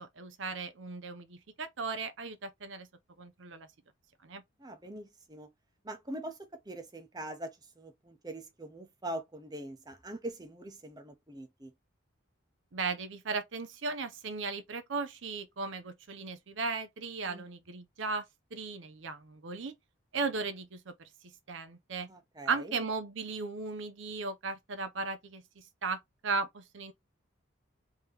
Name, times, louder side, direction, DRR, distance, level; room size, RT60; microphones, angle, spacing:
voice 1, 0.0-2.9 3.2-3.7 4.2-4.4 12.7-18.2 18.5-19.7 20.1-20.9 21.5-22.1 22.5-26.9, right 4 dB, 70° right, 0.6 m, -36 dB
voice 2, 4.6-5.5 5.8-6.4 6.7-11.7 17.3-17.5 22.1-22.8, right 1 dB, 20° right, 0.8 m, -43 dB
3.6 x 2.9 x 3.3 m
head